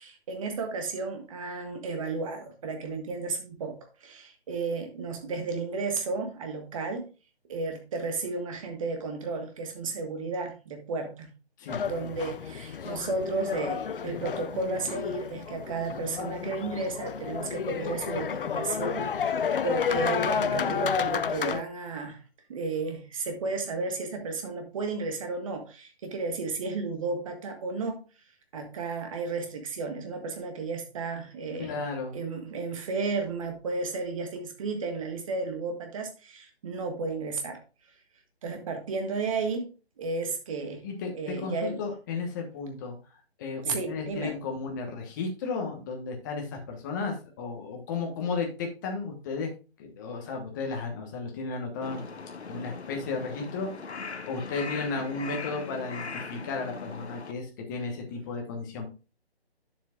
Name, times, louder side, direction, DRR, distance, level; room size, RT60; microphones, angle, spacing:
voice 1, 0.0-7.0 7.5-11.3 11.8-22.2 22.5-28.0 28.5-31.8 32.1-37.6 38.4-39.6 40.0-40.8 41.1-41.8 43.6-44.4, right 3 dB, 30° right, 5 dB, 1.6 m, -33 dB
sound 1, 11.7-21.6, left 7 dB, 55° left, 0.5 m, -31 dB
voice 2, 31.6-32.2 40.8-43.0 43.4-49.5 49.8-52.0 52.5-53.8 54.3-58.9, left 4 dB, 20° left, 2 dB, 1.2 m, -34 dB
Crow, 51.8-57.3, left 4 dB, 90° left, 1.2 m, -40 dB
10.0 x 7.4 x 2.4 m, 0.33 s
hypercardioid pair, 160°, 32 cm